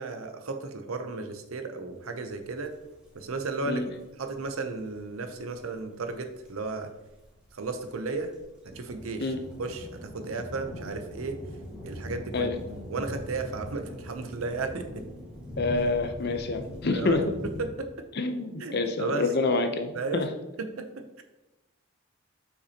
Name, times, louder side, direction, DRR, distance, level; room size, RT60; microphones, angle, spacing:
voice 1, 0.0-2.7 3.1-3.8 4.2-6.9 7.5-8.3 8.6-9.3 9.6-11.4 11.8-12.5 12.9-15.0 16.9-17.3 17.6-18.1 18.6-19.3 20.0-20.2 20.6-21.2, right 3 dB, 80° right, 7 dB, 0.7 m, -34 dB
sound 1, 2.0-2.1 2.3-17.7, left 1 dB, 5° right, 1.8 m, -42 dB
voice 2, 15.6-17.2 18.1-20.3, left 3 dB, 50° left, 7 dB, 0.7 m, -27 dB
8.2 x 5.8 x 2.9 m, 1.0 s
head